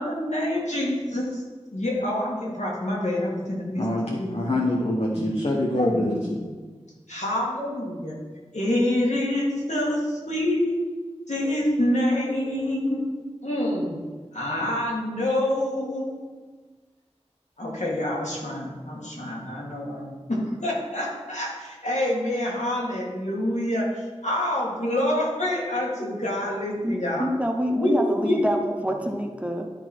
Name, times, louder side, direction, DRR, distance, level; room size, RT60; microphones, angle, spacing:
voice 1, 0.0-1.4 1.7-3.8 4.2-4.6 5.2-5.3 5.8-6.5 7.1-8.2 8.5-10.8 11.3-13.1 13.4-14.0 14.3-16.2 17.6-27.3 27.8-28.4, left 1 dB, 80° left, 2.1 m, -26 dB
voice 2, 3.8-6.1, left 1 dB, 60° left, 1.0 m, -25 dB
voice 3, 26.8-29.7, equal, 10° right, 0.8 m, -27 dB
11.5 x 4.1 x 4.5 m
wide cardioid pair, 45°, 12 cm